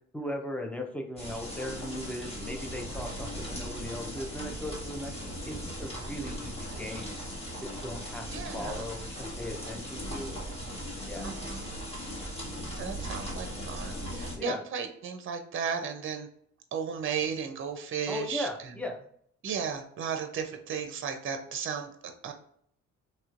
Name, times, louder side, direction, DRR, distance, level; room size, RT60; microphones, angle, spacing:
voice 1, 0.1-5.1 5.5-7.1 7.8-10.3 11.1-11.4 14.3-14.6 18.1-19.0, left 1 dB, 5° left, 2 dB, 0.6 m, -38 dB
sound 1, 1.2-14.4, equal, 20° left, 1.2 m, -38 dB
voice 2, 8.3-8.9 11.2-11.8 12.8-16.3 16.7-18.8 19.4-22.3, right 6 dB, 40° right, 6 dB, 0.6 m, -35 dB
3.1 x 3.0 x 2.5 m, 0.66 s
cardioid pair, 90°, 30 cm